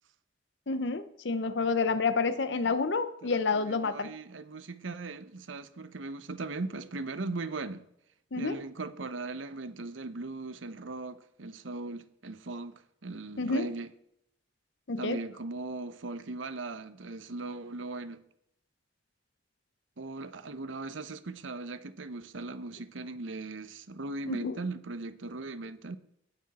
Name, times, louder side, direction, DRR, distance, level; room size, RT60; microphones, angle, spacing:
voice 1, 0.7-4.1 8.3-8.6 13.4-13.7 14.9-15.2 24.3-24.6, left 4 dB, 65° left, 0.7 m, -29 dB
voice 2, 3.2-7.8 8.4-12.7 13.0-13.9 15.0-18.2 20.0-26.0, right 3 dB, 90° right, 0.9 m, -39 dB
17.5 x 6.3 x 4.2 m
head